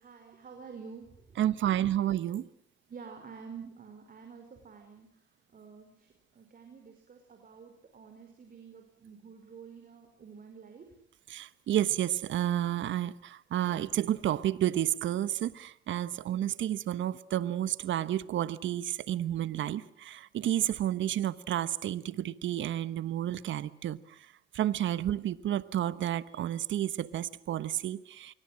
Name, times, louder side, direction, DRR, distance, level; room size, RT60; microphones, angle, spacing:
voice 1, 0.0-1.7 2.9-5.2 5.5-10.8 16.1-16.2, right 6 dB, 45° right, 4 dB, 5.2 m, -49 dB
voice 2, 1.4-2.5 11.3-24.0 24.5-28.3, right 12 dB, 70° right, 16 dB, 1.2 m, -31 dB
26.0 x 23.5 x 7.6 m, 0.68 s
cardioid pair, 90°, 20 cm